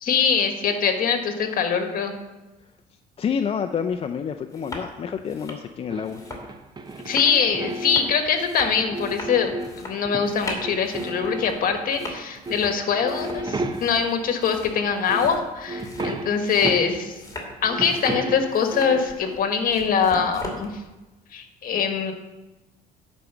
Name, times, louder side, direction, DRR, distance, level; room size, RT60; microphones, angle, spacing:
voice 1, 0.0-2.2 7.0-9.5 9.8-17.1 17.6-20.7 21.3-22.1, left 6 dB, 55° left, 5 dB, 1.5 m, -23 dB
voice 2, 3.2-6.2, left 7 dB, 35° left, 6 dB, 0.5 m, -28 dB
sound 1, 3.9-4.0 4.4-4.9 5.2-20.7, left 2 dB, 20° left, 2.6 m, -39 dB
Buzz guitare électrique ampli, 5.9-8.3 8.7-10.4 10.6-12.1 12.5-12.7 13.0-14.2 14.7-14.8 15.1-17.2 17.5-19.1, right 2 dB, 25° right, 0.8 m, -33 dB
10.5 x 5.2 x 7.0 m, 1.1 s
cardioid pair, 110°, 17 cm